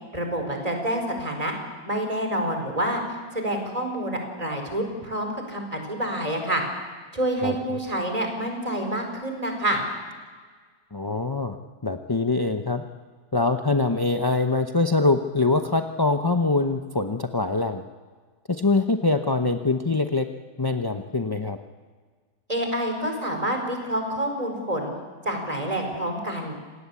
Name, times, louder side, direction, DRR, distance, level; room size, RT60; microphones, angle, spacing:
voice 1, 0.1-1.5 1.8-3.0 3.3-6.6 7.1-9.8 22.5-24.9 25.2-26.6, right 1 dB, 20° right, 3 dB, 4.7 m, -27 dB
voice 2, 7.4-7.8 10.9-11.6 11.8-12.8 13.3-17.8 18.5-20.3 20.6-21.6, left 3 dB, 25° left, 6 dB, 0.4 m, -24 dB
27.5 x 18.5 x 8.4 m, 1.5 s
omnidirectional pair, 1.8 m